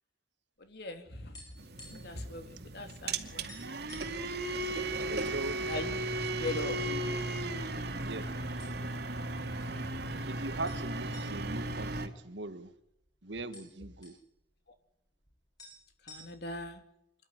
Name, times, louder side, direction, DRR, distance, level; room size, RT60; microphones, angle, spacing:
voice 1, 0.7-1.4 1.9-3.5 5.7-6.7 16.1-16.8, left 2 dB, 65° left, 6 dB, 3.1 m, -40 dB
sound 1, 0.8-2.2 2.5-2.7 3.0-3.1 3.5-4.2 4.9-5.6 6.0-6.1 6.8-7.4 8.1-8.3 8.6-9.1 9.5-9.6 10.6-12.7 13.0-13.1 13.3-14.2 15.3-15.4 15.6-16.6, left 1 dB, 25° left, 7.6 m, -54 dB
sound 2, 1.6-12.1, right 2 dB, 65° right, 2.3 m, -36 dB
voice 2, 5.0-5.6 6.5-7.2 8.0-8.4 10.3-12.7 13.2-14.2, right 2 dB, 85° right, 10 dB, 1.7 m, -41 dB
26.5 x 12.0 x 9.6 m, 0.83 s
head